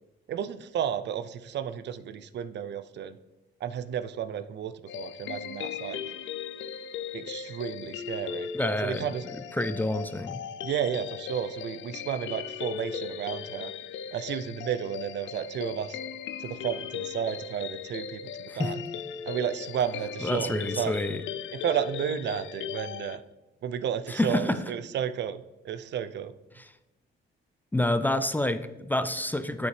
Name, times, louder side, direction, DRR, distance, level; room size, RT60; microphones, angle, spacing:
voice 1, 0.3-3.2 3.6-6.0 7.1-8.5 8.8-9.2 10.6-13.7 14.1-16.0 16.4-18.8 19.3-21.0 21.5-23.2 23.6-26.3, right 9 dB, 60° right, 13 dB, 0.5 m, -32 dB
sound 1, 4.9-23.2, left 8 dB, 75° left, 0.5 m, -38 dB
voice 2, 8.5-9.1 9.6-10.4 18.5-18.7 20.2-21.2 24.1-24.6 26.6-26.7 27.7-29.7, left 1 dB, 10° left, 11 dB, 0.4 m, -28 dB
8.4 x 7.0 x 3.3 m, 1.0 s
cardioid pair, 90°, 20 cm